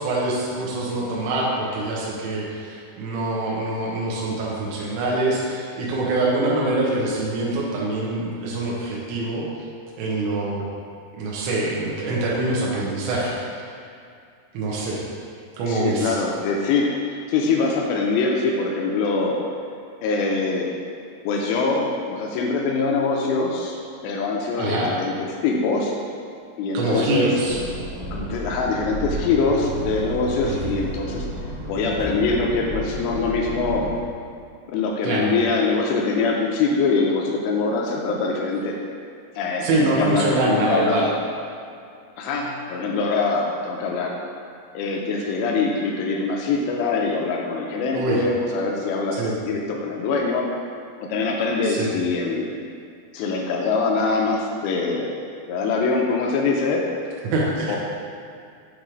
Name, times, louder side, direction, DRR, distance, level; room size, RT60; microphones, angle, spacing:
voice 1, 0.0-9.5 10.0-10.6 11.2-13.4 14.5-15.0 15.6-16.2 24.6-24.9 26.8-27.6 30.4-30.7 35.0-35.3 39.6-41.1 47.9-48.2 49.2-49.3 51.6-51.9 57.3-57.8, right 2 dB, 85° right, -5 dB, 3.4 m, -24 dB
voice 2, 15.7-19.4 20.0-20.8 21.3-23.8 24.0-25.9 26.6-27.4 28.1-31.3 31.7-33.9 34.7-38.8 39.4-41.2 42.2-44.2 44.7-50.5 51.0-52.5 53.1-55.1 55.5-56.9 57.7-57.8, left 4 dB, 85° left, -1 dB, 2.6 m, -23 dB
sound 1, 27.4-34.0, equal, 65° right, 2.3 m, -32 dB
8.3 x 3.1 x 5.0 m, 2.4 s
omnidirectional pair, 5.4 m